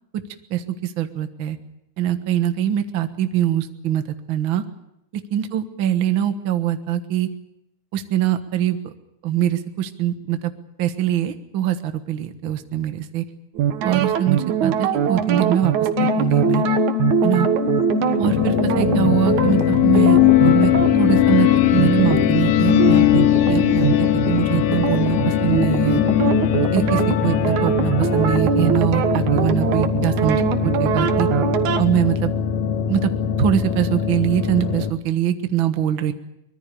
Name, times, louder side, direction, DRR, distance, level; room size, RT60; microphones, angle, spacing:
voice 1, 0.5-1.6 2.0-4.0 4.3-4.6 5.3-7.3 7.9-8.8 9.2-10.5 10.8-13.2 13.8-15.7 16.0-16.6 17.2-17.5 18.2-26.0 26.7-31.3 31.8-32.3 32.9-33.1 33.4-36.1, right 11 dB, 50° right, 8 dB, 1.8 m, -23 dB
sound 1, 13.6-31.8, right 9 dB, 75° right, 2.8 m, -23 dB
sound 2, 16.0-28.4, left 16 dB, 85° left, 2.9 m, -20 dB
sound 3, 18.2-34.9, left 7 dB, 70° left, 2.3 m, -23 dB
24.5 x 21.5 x 6.9 m, 0.82 s
omnidirectional pair, 3.5 m